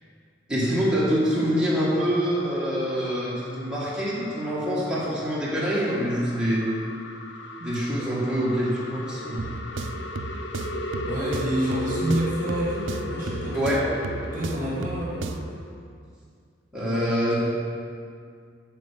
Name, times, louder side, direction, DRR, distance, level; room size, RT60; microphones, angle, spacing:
voice 1, 0.5-6.7 7.6-9.5 13.5-13.8 16.7-17.4, equal, 5° right, -8 dB, 2.0 m, -25 dB
sound 1, 0.6-15.8, left 1 dB, 65° left, 0.7 m, -37 dB
voice 2, 7.6-8.5 11.0-13.6 14.3-15.4 16.8-16.9, right 1 dB, 45° right, -5 dB, 1.5 m, -29 dB
sound 2, 9.4-15.6, right 3 dB, 85° right, 0.5 m, -35 dB
9.1 x 6.2 x 5.2 m, 2.2 s
head